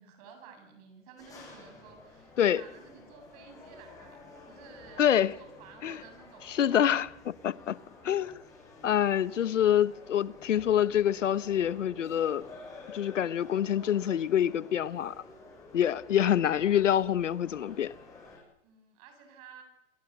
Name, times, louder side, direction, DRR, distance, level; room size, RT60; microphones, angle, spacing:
voice 1, 0.0-7.1 18.6-19.6, right 6 dB, 30° right, 7.4 m, -53 dB
sound 1, 1.2-18.4, left 3 dB, 10° left, 7.5 m, -51 dB
voice 2, 5.0-5.3 5.8-6.0 6.5-7.8 8.0-8.4 8.8-12.4 12.9-15.1 15.7-17.9, left 10 dB, 75° left, 1.2 m, -26 dB
28.0 x 24.0 x 8.1 m
hypercardioid pair, 165°, 37 cm